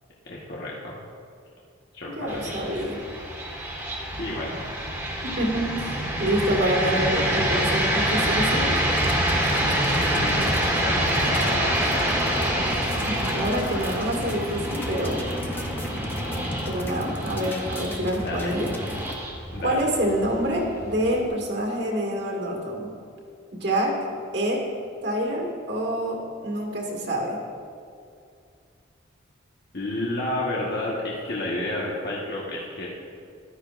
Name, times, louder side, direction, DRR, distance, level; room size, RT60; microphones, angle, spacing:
voice 1, 0.2-1.0 1.9-2.5 4.2-4.6 6.3-6.4 10.1-12.4 18.1-18.5 19.5-19.8 29.7-32.9, left 1 dB, 50° left, -5 dB, 1.2 m, -31 dB
voice 2, 2.1-3.0 5.2-8.7 13.1-15.2 16.6-18.7 19.6-22.9 23.5-24.0 24.3-24.7 25.0-27.4, equal, 55° right, 0 dB, 2.0 m, -27 dB
sound 1, 2.3-21.2, equal, 10° right, 1.5 m, -26 dB
sound 2, 8.7-19.2, left 1 dB, 10° left, 0.6 m, -37 dB
14.0 x 12.0 x 2.5 m, 2.4 s
head